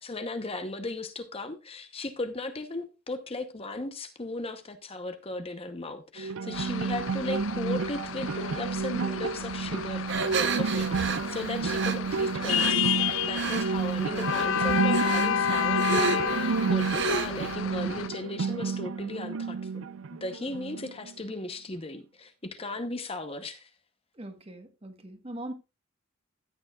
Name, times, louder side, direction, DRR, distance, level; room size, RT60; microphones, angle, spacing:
voice 1, 0.0-23.7, left 2 dB, 30° left, 0.9 m, -37 dB
sound 1, 6.2-21.1, right 5 dB, 75° right, 0.5 m, -30 dB
sound 2, 6.5-18.1, left 9 dB, 70° left, 0.5 m, -31 dB
sound 3, 10.1-12.7 13.3-13.8 14.1-17.5, right 4 dB, 60° right, 0.9 m, -31 dB
voice 2, 24.1-25.5, right 1 dB, 30° right, 1.4 m, -41 dB
14.0 x 8.8 x 2.4 m
head